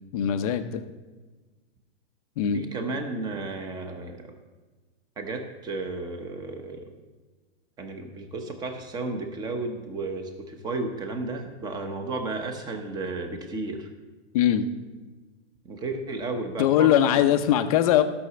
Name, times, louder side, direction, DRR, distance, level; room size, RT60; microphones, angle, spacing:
voice 1, 0.1-0.8 2.4-2.6 14.3-14.6 16.6-18.0, left 11 dB, 30° left, 9 dB, 0.6 m, -21 dB
voice 2, 2.5-4.3 5.2-6.9 7.8-13.9 15.6-17.2, right 3 dB, 10° right, 5 dB, 0.9 m, -33 dB
14.0 x 6.2 x 6.8 m, 1.3 s
hypercardioid pair, 160°, 36 cm